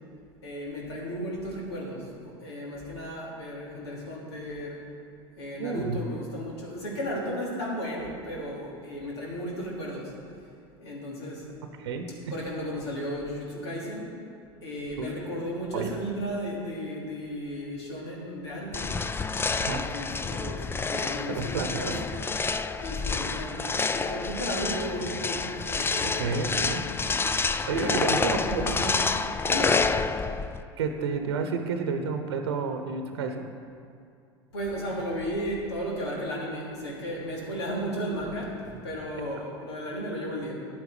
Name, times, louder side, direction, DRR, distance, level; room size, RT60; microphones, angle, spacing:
voice 1, 0.4-4.8 5.4-10.1 10.8-11.5 12.3-14.1 14.6-19.0 19.6-22.3 22.8-26.4 27.7-29.0 29.4-29.9 34.5-40.5, equal, 85° left, -4 dB, 2.9 m, -34 dB
voice 2, 5.6-6.0 11.8-12.3 15.0-15.1 15.7-15.9 19.6-19.8 21.3-22.0 26.0-26.8 27.7-28.6 30.8-33.5, right 5 dB, 80° right, 6 dB, 0.9 m, -30 dB
sound 1, 18.7-30.6, left 4 dB, 15° left, 0.4 m, -28 dB
10.5 x 8.7 x 5.0 m, 2.4 s
hypercardioid pair, 80°, 14 cm